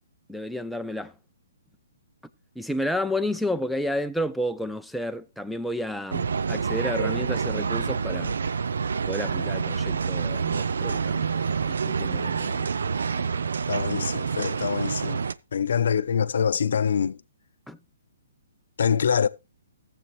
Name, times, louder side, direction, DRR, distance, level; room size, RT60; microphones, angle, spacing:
voice 1, 0.3-1.1 2.6-8.3 9.1-11.3 11.8-12.7 17.7-17.8, left 1 dB, ahead, 0.5 m, -31 dB
sound 1, 6.1-15.3, right 5 dB, 80° right, 0.5 m, -27 dB
voice 2, 13.7-15.2 15.5-17.2 18.8-19.3, left 7 dB, 70° left, 0.6 m, -24 dB
15.0 x 7.7 x 3.2 m
hypercardioid pair, 160°, 0 cm